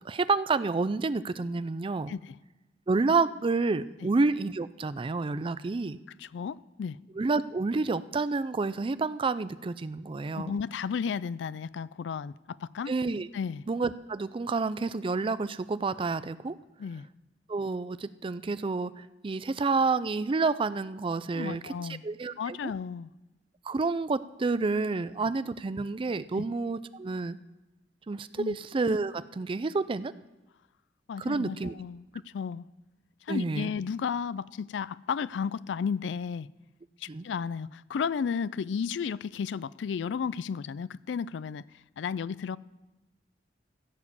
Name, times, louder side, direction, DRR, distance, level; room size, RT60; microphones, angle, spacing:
voice 1, 0.0-2.1 2.9-6.0 7.2-10.6 12.9-13.3 13.7-16.6 17.5-21.7 22.0-22.6 23.6-27.4 28.1-30.1 31.2-31.7 33.3-33.7 37.1-37.3, right 3 dB, 30° right, 0.4 m, -29 dB
voice 2, 6.2-7.0 10.3-12.9 13.3-13.6 16.8-17.0 21.3-22.0 22.4-23.1 26.4-26.5 28.4-28.6 31.1-32.7 33.3-36.5 37.0-41.6 42.0-42.6, left 6 dB, 80° left, 0.4 m, -33 dB
15.5 x 7.3 x 6.8 m
head